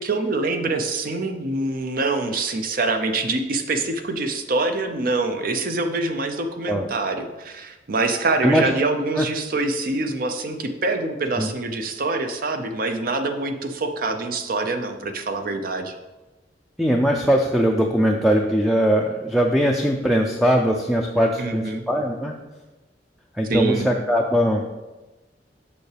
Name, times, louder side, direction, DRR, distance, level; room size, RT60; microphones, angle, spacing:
voice 1, 0.0-15.9 21.4-21.8 23.5-23.9, right 3 dB, 55° right, 6 dB, 0.6 m, -25 dB
voice 2, 16.8-22.3 23.4-24.6, equal, ahead, 1 dB, 0.4 m, -20 dB
6.8 x 5.6 x 3.3 m, 1.1 s
head